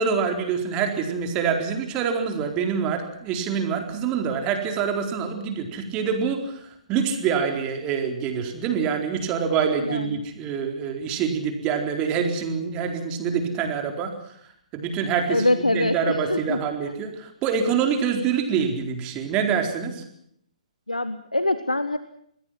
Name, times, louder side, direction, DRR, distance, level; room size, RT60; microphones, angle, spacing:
voice 1, 0.0-14.1 14.7-20.0, right 6 dB, 20° right, 5 dB, 4.2 m, -26 dB
voice 2, 9.8-10.2 15.3-16.6 20.9-22.0, left 1 dB, 80° left, 13 dB, 1.4 m, -24 dB
27.5 x 21.0 x 5.9 m, 0.69 s
figure-of-eight pair, 125°, 4 cm